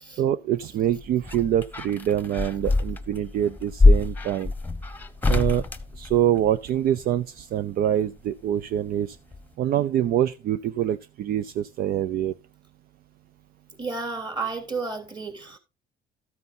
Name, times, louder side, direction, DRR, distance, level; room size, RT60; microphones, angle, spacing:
voice 1, 0.2-4.5 5.3-5.6 5.9-9.2 9.6-12.3, right 11 dB, 60° right, 0.5 m, -25 dB
sound 1, 0.7-6.8 8.2-9.0 9.3-9.4, left 3 dB, 10° left, 1.0 m, -24 dB
voice 2, 13.8-15.6, right 4 dB, 25° right, 3.2 m, -32 dB
13.5 x 9.4 x 2.7 m
cardioid pair, 110°, 17 cm